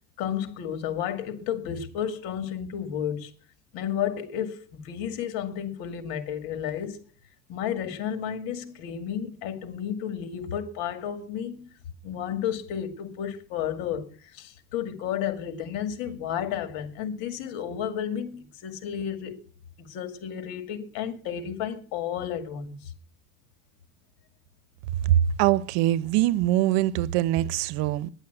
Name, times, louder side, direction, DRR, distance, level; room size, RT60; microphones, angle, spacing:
voice 1, 0.2-3.3 3.7-7.0 7.5-11.7 12.0-19.4 19.8-22.9, left 9 dB, 75° left, 2.4 m, -32 dB
voice 2, 25.4-28.1, right 15 dB, 80° right, 0.9 m, -23 dB
10.5 x 10.5 x 8.0 m
cardioid pair, 135°, 36 cm